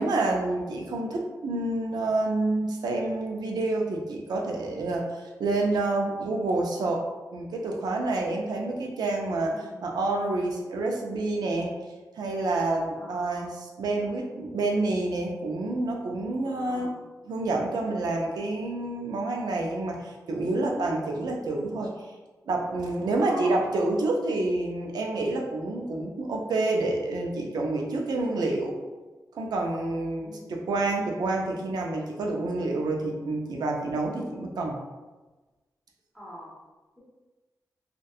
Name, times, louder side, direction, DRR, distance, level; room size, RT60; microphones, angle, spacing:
voice 1, 0.0-7.0 7.3-11.7 12.1-16.9 17.3-21.9 22.5-28.8 29.3-34.8, right 2 dB, 90° right, 0 dB, 0.4 m, -28 dB
voice 2, 9.5-9.8 13.0-13.5 16.4-17.0 23.2-23.6 28.1-28.4 30.2-30.6 36.1-36.5, equal, ahead, -7 dB, 0.9 m, -43 dB
2.6 x 2.2 x 2.3 m, 1.2 s
cardioid pair, 70°, 7 cm